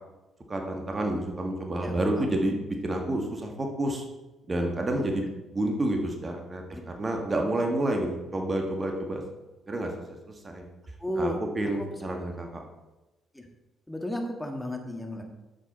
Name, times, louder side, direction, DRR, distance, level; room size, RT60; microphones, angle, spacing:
voice 1, 0.5-4.0 4.5-5.2 5.5-9.2 9.7-10.2 10.4-10.6 11.2-12.6, right 1 dB, 30° right, 2 dB, 1.6 m, -29 dB
voice 2, 1.8-2.4 4.9-5.1 6.7-6.8 11.0-11.4 11.8-11.9 13.3-13.5 13.9-15.2, left 1 dB, 10° left, 3 dB, 1.6 m, -34 dB
9.8 x 7.4 x 4.3 m, 1.1 s
figure-of-eight pair, 45°, 0 cm